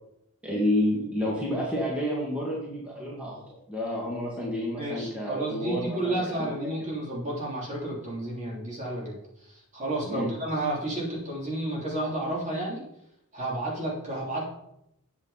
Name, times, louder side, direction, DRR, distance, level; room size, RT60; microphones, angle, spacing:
voice 1, 0.4-6.5 10.0-10.3, left 1 dB, 5° right, -5 dB, 2.2 m, -30 dB
voice 2, 4.8-12.8 13.3-14.4, right 1 dB, 35° right, -4 dB, 3.4 m, -31 dB
8.8 x 8.5 x 4.3 m, 0.79 s
head